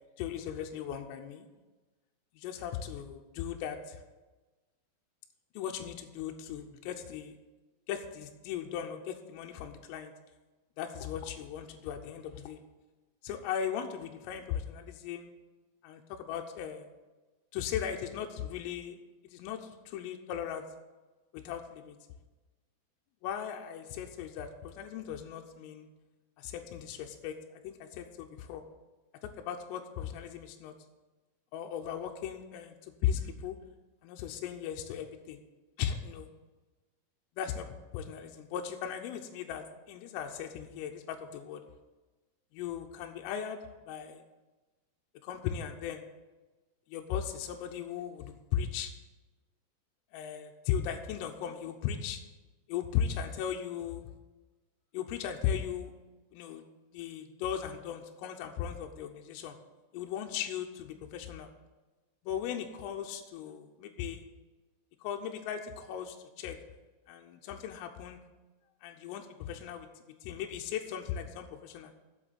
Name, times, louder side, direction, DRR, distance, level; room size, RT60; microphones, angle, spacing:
voice 1, 0.2-1.5 2.3-4.0 5.5-7.4 7.9-10.1 10.8-12.6 13.2-15.3 15.8-16.9 17.5-19.0 19.2-20.7 21.3-22.0 23.2-25.9 26.4-28.6 29.2-30.7 31.5-33.6 34.0-35.4 35.8-36.3 37.4-37.7 37.9-41.6 42.5-43.6 43.9-44.2 45.2-46.0 46.9-48.9 50.1-52.2 52.7-54.0 54.9-55.9 56.3-56.6 56.9-59.6 59.9-61.5 62.2-64.2 65.0-66.6 67.1-68.2 68.8-71.9, left 9 dB, 85° left, 3 dB, 3.3 m, -37 dB
8.1 x 7.6 x 7.9 m, 1.2 s
omnidirectional pair, 6.0 m